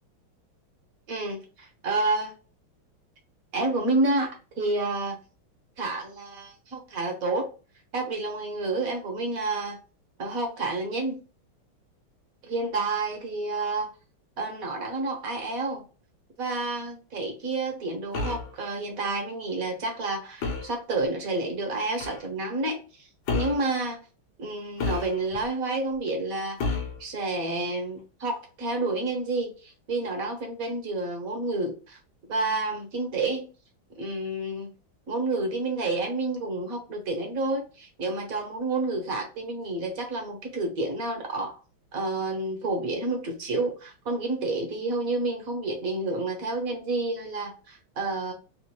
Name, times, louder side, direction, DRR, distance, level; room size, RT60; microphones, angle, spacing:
voice 1, 1.1-2.3 3.5-5.2 5.8-7.5 7.9-9.8 10.2-11.2 12.4-13.9 14.4-15.8 16.4-24.0 24.4-32.0 32.3-33.5 34.0-34.7 35.1-41.6 41.9-48.3, right 2 dB, 55° right, 1.2 m, -29 dB
sound 1, 18.1-18.5 20.4-20.8 22.0-22.2 23.3-23.7 24.8-25.4 26.6-27.0, left 4 dB, 65° left, 1.2 m, -30 dB
3.6 x 2.4 x 2.8 m
omnidirectional pair, 2.2 m